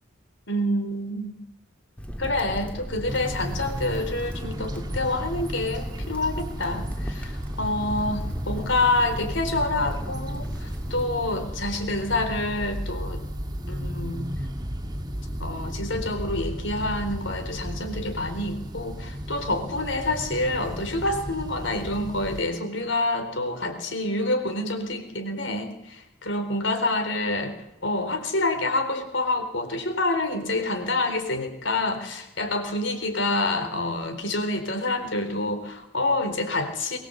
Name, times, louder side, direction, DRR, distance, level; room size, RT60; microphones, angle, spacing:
voice 1, 0.5-1.4 2.2-13.2 13.7-14.3 15.4-27.5 27.8-37.0, left 2 dB, 70° left, 7 dB, 4.2 m, -27 dB
Crackle, 2.0-11.0, equal, 5° left, 1.9 m, -35 dB
sound 1, 3.1-22.4, equal, 20° right, 1.6 m, -34 dB
23.0 x 20.5 x 8.1 m, 0.85 s
head